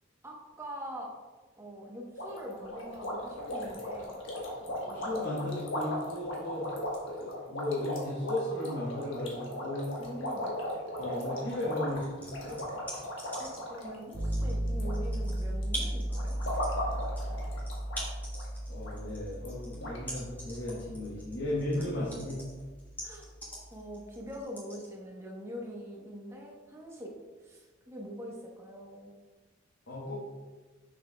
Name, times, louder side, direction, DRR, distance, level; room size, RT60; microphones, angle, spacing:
voice 1, 0.2-1.1 1.6-4.2 4.8-5.2 10.0-10.5 13.4-16.4 21.8-22.2 23.0-23.3 23.7-27.1 27.4-29.1, equal, 15° right, -2 dB, 1.0 m, -43 dB
sound 1, 2.2-14.9 15.2-15.6 16.1-18.1 18.3-18.5 18.8-18.9 19.5-19.6 19.8-20.0, left 1 dB, 80° left, 1.4 m, -37 dB
voice 2, 4.8-6.7 7.2-9.9 10.9-12.7 18.7-22.4 29.9-30.1, left 1 dB, 60° left, -7 dB, 1.3 m, -35 dB
sound 2, 11.9-13.7 14.1-24.9, right 1 dB, 10° left, 1.7 m, -43 dB
sound 3, 14.1-24.0, right 1 dB, 55° right, 1.0 m, -36 dB
6.7 x 6.3 x 2.3 m, 1.3 s
head